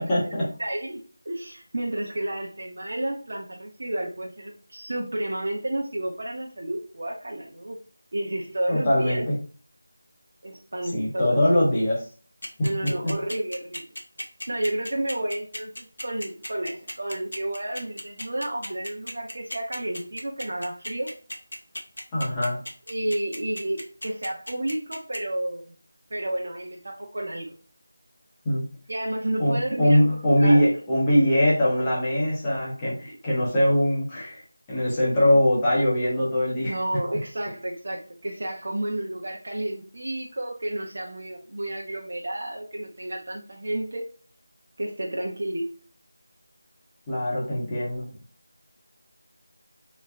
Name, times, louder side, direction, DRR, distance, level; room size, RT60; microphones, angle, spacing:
voice 1, 0.0-0.5 8.7-9.4 10.9-12.0 12.6-13.2 22.1-22.6 28.4-28.7 29.4-34.4 34.7-37.0 47.1-48.1, equal, 10° left, -7 dB, 0.9 m, -22 dB
voice 2, 0.6-7.8 8.1-9.2 10.4-11.4 12.6-13.8 14.5-21.1 22.9-25.7 26.1-27.5 28.9-30.7 36.6-44.1 44.8-45.7, right 1 dB, 50° right, -1 dB, 0.9 m, -31 dB
sound 1, 12.4-25.2, left 1 dB, 90° left, 1.1 m, -35 dB
3.5 x 3.2 x 2.5 m, 0.40 s
figure-of-eight pair, 175°, 0 cm